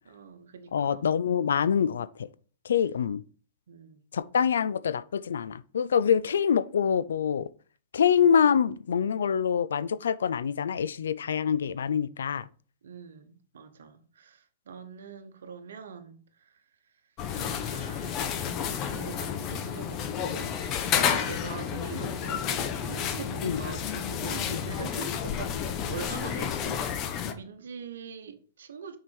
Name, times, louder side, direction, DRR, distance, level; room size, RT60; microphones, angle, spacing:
voice 1, 0.0-1.1 3.7-4.0 12.8-16.6 17.3-29.0, right 6 dB, 75° right, 0.9 m, -44 dB
voice 2, 0.7-2.3 2.6-3.2 4.1-7.5 7.9-12.5 23.4-23.6 24.5-24.6, left 7 dB, 75° left, 0.4 m, -25 dB
sound 1, 17.2-27.3, left 8 dB, 40° left, 0.9 m, -31 dB
6.0 x 4.8 x 4.5 m
hypercardioid pair, 110°, 0 cm